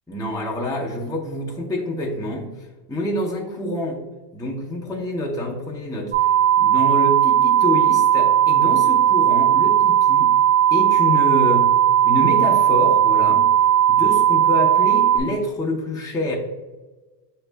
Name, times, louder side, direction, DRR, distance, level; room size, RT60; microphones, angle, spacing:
voice 1, 0.1-2.5 2.9-4.0 4.3-6.3 6.6-10.4 10.7-11.7 12.0-13.5 13.9-16.4, left 1 dB, 5° left, -2 dB, 0.6 m, -26 dB
sound 1, 6.1-15.2, right 10 dB, 55° right, 1.2 m, -17 dB
7.8 x 3.0 x 2.2 m, 1.2 s
omnidirectional pair, 1.1 m